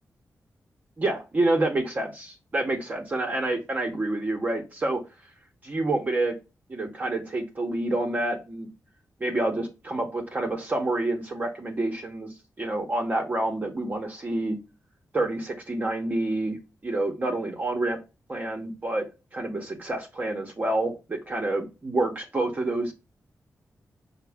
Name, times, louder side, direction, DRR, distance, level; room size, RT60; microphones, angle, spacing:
voice 1, 1.0-5.0 5.6-6.3 6.7-8.7 9.2-12.3 12.6-14.6 15.1-18.0 18.3-19.1 19.3-22.9, right 2 dB, 30° right, 2 dB, 0.8 m, -28 dB
5.8 x 2.1 x 3.4 m, 0.28 s
wide cardioid pair, 155°, 6 cm